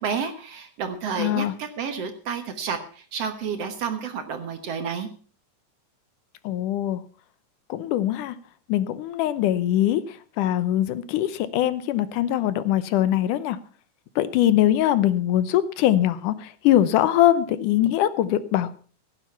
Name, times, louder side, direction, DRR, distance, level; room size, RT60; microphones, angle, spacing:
voice 1, 0.0-5.1, right 6 dB, 60° right, 8 dB, 2.0 m, -30 dB
voice 2, 1.2-1.5 6.4-7.0 7.7-8.4 8.7-13.6 14.2-18.8, left 12 dB, 80° left, 15 dB, 2.3 m, -22 dB
16.5 x 9.3 x 5.8 m, 0.41 s
omnidirectional pair, 3.7 m